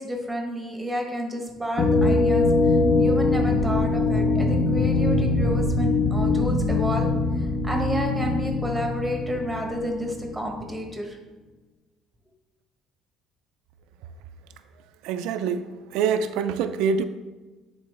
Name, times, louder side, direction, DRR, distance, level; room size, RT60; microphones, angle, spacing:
voice 1, 0.0-7.1 7.4-11.2, equal, 5° right, 1 dB, 1.2 m, -30 dB
sound 1, 1.8-10.5, left 3 dB, 35° left, 0.8 m, -22 dB
voice 2, 15.0-17.0, right 6 dB, 85° right, 9 dB, 0.4 m, -25 dB
10.0 x 4.0 x 3.4 m, 1.2 s
cardioid pair, 140°, 0 cm